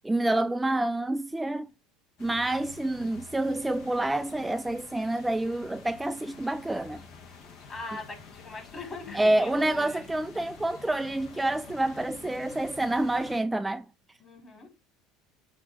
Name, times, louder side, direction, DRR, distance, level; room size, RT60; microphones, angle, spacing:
voice 1, 0.0-1.7 2.2-7.0 9.1-13.8, right 1 dB, 10° right, 0.4 m, -28 dB
sound 1, 2.2-13.4, left 5 dB, 55° left, 1.6 m, -49 dB
voice 2, 7.7-10.1 14.2-14.7, left 3 dB, 30° left, 3.8 m, -41 dB
8.2 x 2.9 x 5.0 m
hypercardioid pair, 80°, 0 cm